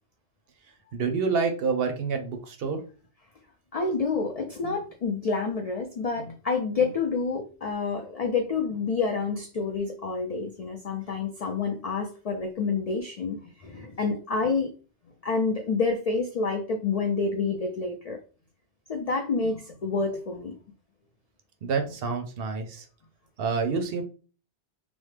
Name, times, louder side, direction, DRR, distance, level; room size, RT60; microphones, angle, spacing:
voice 1, 0.9-2.8 21.6-22.9 23.4-24.0, right 5 dB, 65° right, 5 dB, 0.7 m, -28 dB
voice 2, 3.7-14.7 15.2-18.2 18.9-20.6, left 4 dB, 70° left, 2 dB, 0.3 m, -28 dB
3.1 x 2.0 x 3.2 m, 0.37 s
omnidirectional pair, 1.2 m